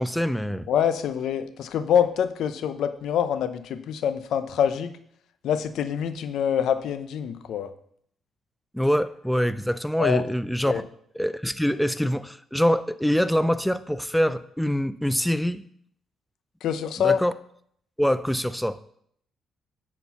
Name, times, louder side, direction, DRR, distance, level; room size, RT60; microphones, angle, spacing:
voice 1, 0.0-0.7 8.7-10.8 11.1-15.6 17.0-17.3 18.0-18.8, equal, ahead, 0.4 m, -24 dB
voice 2, 0.7-4.9 5.4-7.7 10.0-10.2 10.6-10.8 16.6-17.2, left 8 dB, 75° left, 0.7 m, -25 dB
9.7 x 4.5 x 5.7 m
cardioid pair, 90°, 0 cm